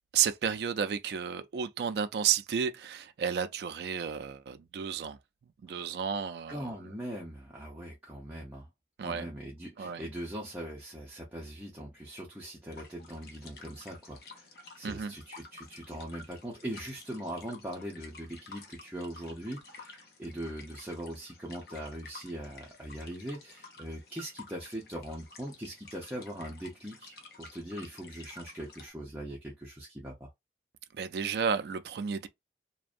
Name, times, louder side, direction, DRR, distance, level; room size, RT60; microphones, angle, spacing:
voice 1, 0.1-5.2 5.6-6.7 9.0-9.3 9.8-10.0 14.8-15.2 30.9-32.3, right 7 dB, 65° right, 0.3 m, -32 dB
voice 2, 6.5-8.7 9.0-14.5 14.8-30.3, right 1 dB, 10° right, 0.6 m, -41 dB
sound 1, 12.7-28.9, left 3 dB, 60° left, 0.6 m, -52 dB
2.6 x 2.1 x 2.4 m
head